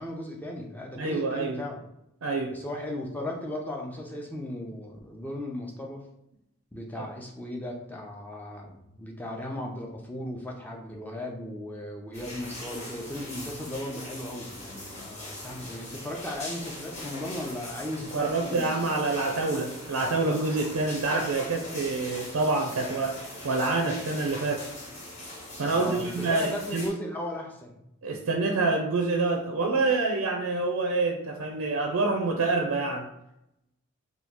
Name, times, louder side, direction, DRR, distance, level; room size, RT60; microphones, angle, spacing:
voice 1, 0.0-1.8 2.5-6.0 6.7-18.7 25.7-27.8, left 1 dB, 10° left, 0 dB, 0.4 m, -36 dB
voice 2, 1.0-1.6 2.2-2.6 7.0-7.1 18.1-23.2 23.4-24.7 25.6-26.9 28.0-33.1, right 3 dB, 75° right, 1 dB, 0.5 m, -27 dB
sound 1, 12.1-26.9, left 1 dB, 30° left, 1.0 m, -41 dB
2.9 x 2.3 x 3.6 m, 0.83 s
head